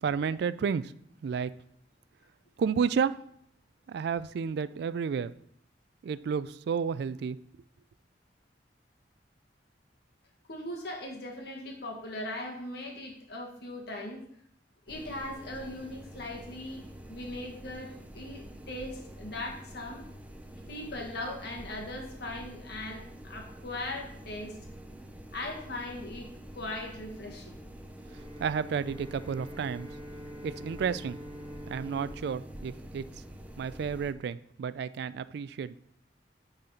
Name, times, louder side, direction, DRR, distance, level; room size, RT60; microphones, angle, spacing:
voice 1, 0.0-0.9 1.2-1.5 2.6-3.2 3.9-5.3 6.0-7.4 28.4-29.9 30.4-31.2 31.7-33.0 33.6-35.8, right 6 dB, 65° right, 16 dB, 0.3 m, -31 dB
voice 2, 10.5-14.2 14.9-20.1 20.7-24.6 25.3-27.6, left 1 dB, 65° left, 1 dB, 1.6 m, -39 dB
sound 1, 14.9-34.1, right 1 dB, 10° right, 0.5 m, -47 dB
Bowed string instrument, 28.0-33.7, equal, 25° right, 1.6 m, -46 dB
8.7 x 4.1 x 4.2 m, 0.67 s
head